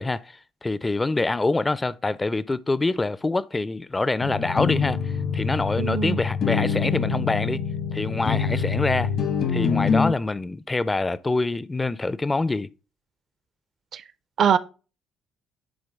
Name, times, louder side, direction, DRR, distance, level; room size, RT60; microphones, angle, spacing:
voice 1, 0.0-7.6 7.9-9.1 9.5-12.7, left 2 dB, 20° left, 0.4 m, -25 dB
sound 1, 4.2-10.1, left 6 dB, 65° left, 1.1 m, -25 dB
voice 2, 5.8-6.2 13.9-14.0 14.4-14.6, right 8 dB, 55° right, 0.6 m, -22 dB
9.7 x 3.7 x 3.5 m
hypercardioid pair, 60°, 0 cm